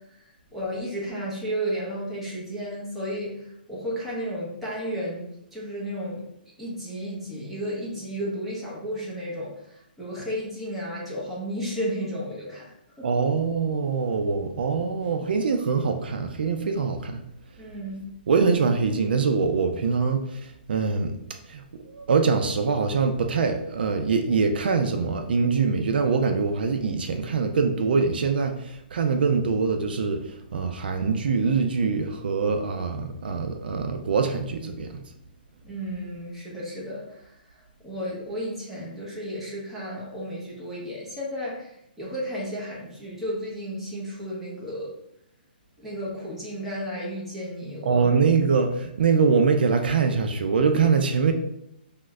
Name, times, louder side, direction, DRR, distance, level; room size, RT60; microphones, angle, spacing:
voice 1, 0.5-6.2 6.6-13.1 17.6-18.0 35.6-37.3 37.8-45.0 45.8-48.1, equal, ahead, -7 dB, 0.7 m, -33 dB
voice 2, 13.0-17.2 18.3-21.2 21.5-35.0 47.8-51.3, right 5 dB, 65° right, 6 dB, 0.4 m, -24 dB
3.0 x 2.1 x 3.5 m, 0.78 s
hypercardioid pair, 165°, 6 cm